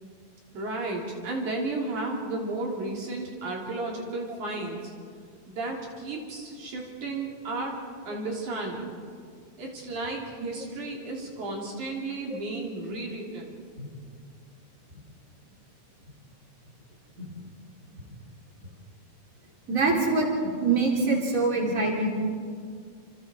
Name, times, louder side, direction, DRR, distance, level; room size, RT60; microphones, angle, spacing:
voice 1, 0.5-4.8 5.5-7.8 8.1-9.0 9.6-13.6, right 2 dB, 75° right, -1 dB, 4.7 m, -33 dB
voice 2, 19.7-22.1, right 3 dB, 25° right, -1 dB, 3.7 m, -25 dB
28.5 x 27.5 x 4.5 m, 2.1 s
omnidirectional pair, 3.6 m